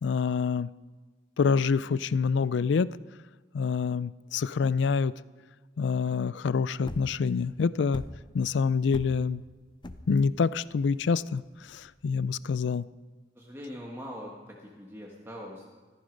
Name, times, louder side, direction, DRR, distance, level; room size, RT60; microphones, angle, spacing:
voice 1, 0.0-0.7 1.4-2.9 3.5-5.1 5.8-8.0 8.3-9.4 10.1-11.4 11.7-12.8, left 5 dB, 70° left, 18 dB, 0.4 m, -26 dB
sound 1, 6.9-12.5, left 1 dB, 25° left, 0.6 m, -43 dB
voice 2, 13.3-15.6, equal, 15° right, -2 dB, 1.4 m, -42 dB
14.5 x 13.5 x 5.3 m, 1.4 s
head